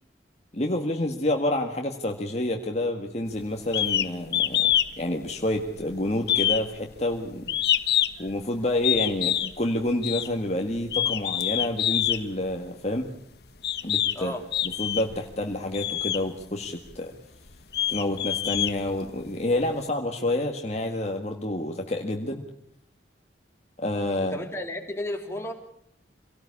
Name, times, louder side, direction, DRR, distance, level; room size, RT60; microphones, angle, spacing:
voice 1, 0.5-4.7 5.0-7.5 8.2-13.1 13.8-14.3 14.6-17.1 17.9-22.4 23.8-24.5, left 1 dB, 35° left, 3 dB, 1.7 m, -28 dB
sound 1, 3.7-4.1 4.3-4.9 5.2-5.8 6.2-8.3 8.8-9.5 10.0-10.3 10.8-12.2 13.0-13.1 13.6-14.2 14.5-15.2 15.7-16.2 16.9-17.0 17.5-19.3, left 11 dB, 60° left, 1.3 m, -25 dB
voice 2, 24.1-25.5, left 1 dB, 15° left, 2 dB, 3.3 m, -33 dB
26.0 x 18.0 x 8.5 m, 0.70 s
head